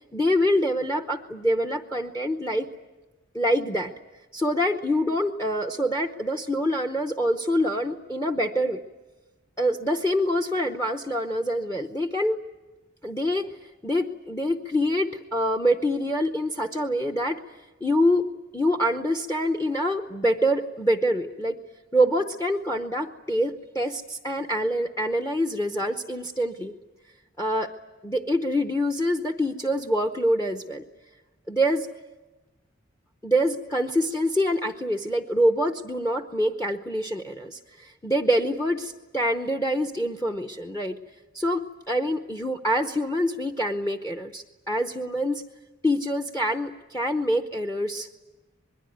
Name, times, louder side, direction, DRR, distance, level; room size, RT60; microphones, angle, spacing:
voice 1, 0.1-2.7 3.3-3.9 4.3-8.8 9.6-12.4 13.0-13.5 13.8-17.4 17.8-18.3 18.5-21.6 21.9-26.7 27.4-27.7 28.0-30.8 31.5-31.9 33.2-41.0 41.3-45.4 45.8-48.1, equal, 15° left, 6 dB, 0.8 m, -25 dB
26.0 x 21.5 x 9.4 m, 1.1 s
head